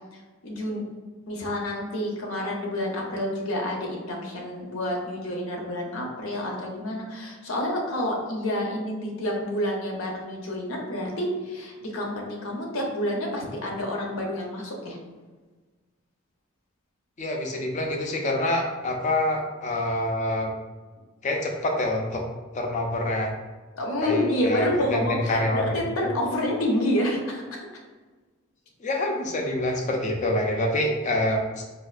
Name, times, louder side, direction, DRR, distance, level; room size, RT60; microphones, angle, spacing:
voice 1, 0.1-0.8 1.3-15.0 23.8-27.7, left 1 dB, 75° left, 0 dB, 0.7 m, -28 dB
voice 2, 17.2-20.5 21.2-22.2 22.5-23.3 24.0-25.7 26.0-26.1 28.8-31.6, left 1 dB, 35° left, 2 dB, 0.5 m, -26 dB
4.3 x 2.4 x 2.4 m, 1.3 s
head